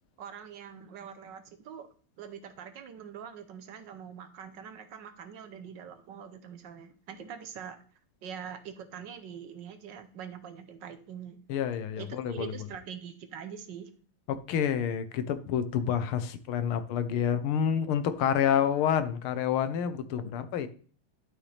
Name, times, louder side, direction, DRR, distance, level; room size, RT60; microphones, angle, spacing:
voice 1, 0.2-1.9 2.2-7.8 8.2-11.4 12.0-13.9, right 8 dB, 65° right, 9 dB, 1.4 m, -44 dB
voice 2, 11.5-12.5 14.3-20.7, left 8 dB, 90° left, 11 dB, 1.7 m, -28 dB
11.5 x 5.6 x 3.3 m, 0.42 s
omnidirectional pair, 2.3 m